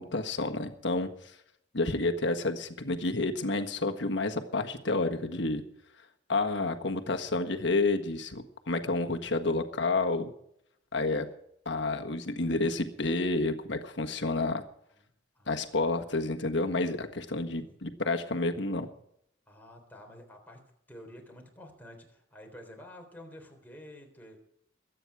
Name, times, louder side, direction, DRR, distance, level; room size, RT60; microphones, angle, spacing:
voice 1, 0.0-1.3 1.7-5.6 6.3-10.3 10.9-11.3 11.6-14.6 15.5-18.9, left 2 dB, 65° left, 5 dB, 1.5 m, -30 dB
voice 2, 15.3-15.9 17.5-17.8 19.5-20.6 20.9-24.4, left 1 dB, 10° left, 2 dB, 3.7 m, -50 dB
22.0 x 9.2 x 4.8 m, 0.72 s
head